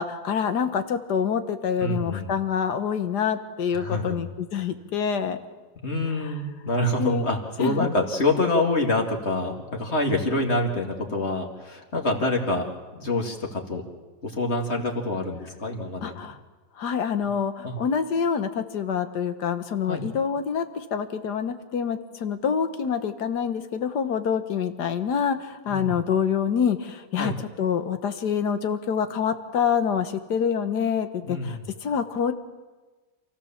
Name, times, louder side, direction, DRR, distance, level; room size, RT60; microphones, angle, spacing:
voice 1, 0.0-5.4 7.0-7.3 7.6-7.9 16.0-16.4 16.8-27.3 27.6-32.3, left 7 dB, 85° left, 9 dB, 1.8 m, -26 dB
voice 2, 1.8-2.3 3.7-4.3 5.8-13.8 14.2-16.1 17.6-17.8 19.8-20.0 25.7-26.0 27.2-27.4 31.2-31.6, left 2 dB, 40° left, 2 dB, 2.6 m, -26 dB
28.0 x 15.5 x 7.3 m, 1.3 s
omnidirectional pair, 1.7 m